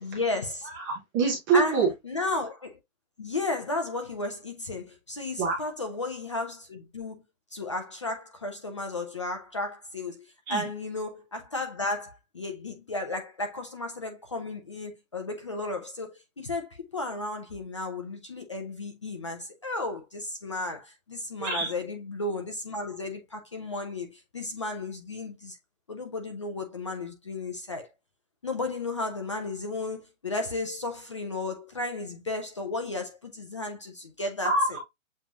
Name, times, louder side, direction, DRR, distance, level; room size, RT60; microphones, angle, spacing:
voice 1, 0.0-0.7 1.5-2.8 3.2-7.2 7.5-25.6 25.9-27.9 28.4-34.8, left 2 dB, 25° left, 0.4 m, -34 dB
voice 2, 0.7-1.9 5.4-5.7 10.5-10.7 21.4-21.7 34.4-34.8, right 4 dB, 15° right, 0.8 m, -25 dB
7.3 x 2.9 x 2.3 m
hypercardioid pair, 160°, 40 cm